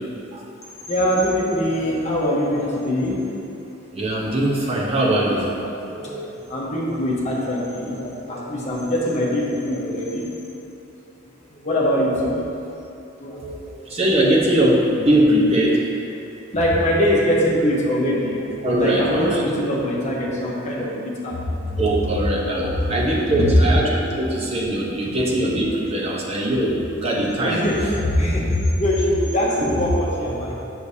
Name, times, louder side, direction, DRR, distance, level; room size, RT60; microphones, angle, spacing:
voice 1, 0.8-3.3 5.4-10.2 11.5-12.4 13.2-13.9 16.5-21.8 22.9-23.5 24.1-24.3 27.4-30.6, equal, 35° left, -5 dB, 1.0 m, -23 dB
voice 2, 3.9-5.5 13.9-15.8 18.6-19.4 21.8-27.6 29.6-29.7, right 1 dB, 30° right, -4 dB, 0.9 m, -21 dB
6.7 x 6.5 x 2.8 m, 2.8 s
head